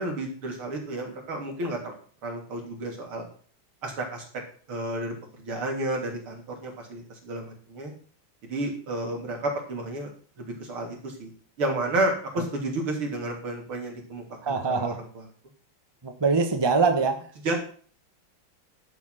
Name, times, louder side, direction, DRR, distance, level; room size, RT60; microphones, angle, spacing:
voice 1, 0.0-1.9 2.2-3.3 3.8-4.2 4.7-7.9 8.5-10.1 10.4-11.3 11.6-15.2 17.4-17.5, right 2 dB, 80° right, 1 dB, 4.0 m, -31 dB
voice 2, 14.4-15.0 16.0-17.2, right 4 dB, 15° right, 5 dB, 1.1 m, -23 dB
12.0 x 7.4 x 5.8 m, 0.44 s
omnidirectional pair, 2.3 m